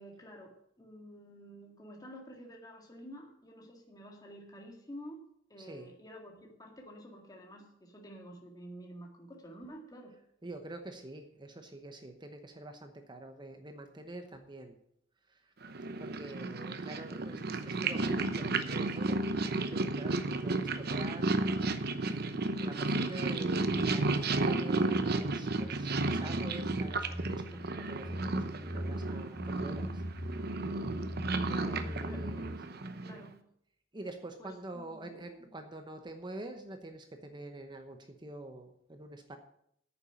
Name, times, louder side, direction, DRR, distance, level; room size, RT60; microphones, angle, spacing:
voice 1, 0.0-5.2 5.5-10.1 17.3-17.5 31.5-32.5 33.0-33.4 34.4-35.1 35.4-35.5, equal, 20° left, 0 dB, 1.9 m, -50 dB
voice 2, 5.6-5.9 10.4-14.8 15.3-15.5 16.0-21.8 22.1-22.3 22.6-30.0 31.7-32.4 32.7-32.8 33.9-39.4, right 2 dB, 25° right, 6 dB, 1.0 m, -46 dB
Purr, 15.6-33.3, right 2 dB, 55° right, 0.9 m, -33 dB
sound 1, 24.9-32.4, equal, 5° left, 3.7 m, -42 dB
9.1 x 7.1 x 9.0 m, 0.72 s
head